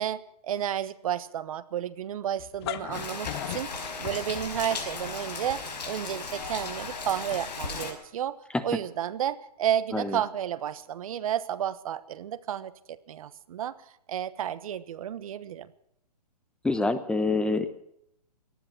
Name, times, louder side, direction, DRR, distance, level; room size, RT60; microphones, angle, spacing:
voice 1, 0.0-8.4 8.6-13.8 14.1-15.7, right 10 dB, 55° right, 15 dB, 1.2 m, -32 dB
sound 1, 2.4-5.0, left 13 dB, 40° left, 1.0 m, -37 dB
Rain, 2.9-7.9, left 4 dB, 85° left, 5.2 m, -36 dB
voice 2, 16.6-17.7, left 3 dB, 5° left, 11 dB, 0.8 m, -26 dB
18.5 x 13.0 x 6.0 m, 0.76 s
hypercardioid pair, 145°, 21 cm